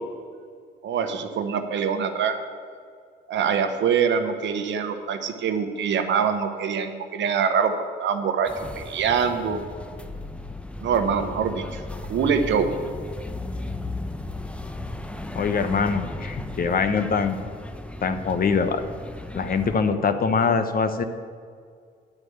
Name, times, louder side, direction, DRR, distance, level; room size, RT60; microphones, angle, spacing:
voice 1, 0.8-2.4 3.3-8.5 8.8-9.6 10.8-11.8 12.1-12.7, right 6 dB, 75° right, 7 dB, 0.9 m, -24 dB
sound 1, 8.5-19.8, left 2 dB, 5° left, 0.6 m, -35 dB
voice 2, 15.3-17.4 18.0-18.8 19.3-21.0, left 5 dB, 50° left, 8 dB, 0.8 m, -23 dB
9.6 x 4.8 x 7.9 m, 2.1 s
supercardioid pair, 65°, 19 cm